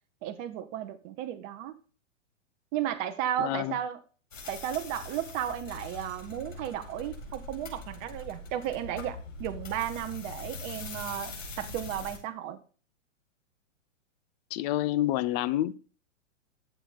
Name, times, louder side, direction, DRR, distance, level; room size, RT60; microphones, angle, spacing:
voice 1, 0.2-1.7 2.7-4.0 4.5-12.6, right 11 dB, 35° right, 1.1 m, -34 dB
voice 2, 3.4-3.8 14.5-15.7, left 14 dB, 35° left, 0.6 m, -28 dB
sound 1, 4.3-12.2, left 3 dB, 80° left, 4.9 m, -42 dB
11.5 x 7.8 x 3.9 m
hypercardioid pair, 125°, 38 cm